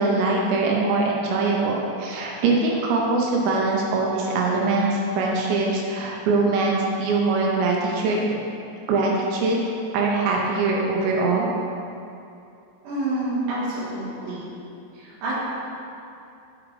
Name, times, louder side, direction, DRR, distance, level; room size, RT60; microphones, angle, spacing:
voice 1, 0.0-8.4 8.9-9.6 9.9-11.5, right 3 dB, 85° right, -2 dB, 3.4 m, -22 dB
voice 2, 12.8-14.5 14.9-15.3, right 2 dB, 60° right, -9 dB, 2.7 m, -28 dB
7.0 x 5.1 x 3.2 m, 2.6 s
omnidirectional pair, 6.0 m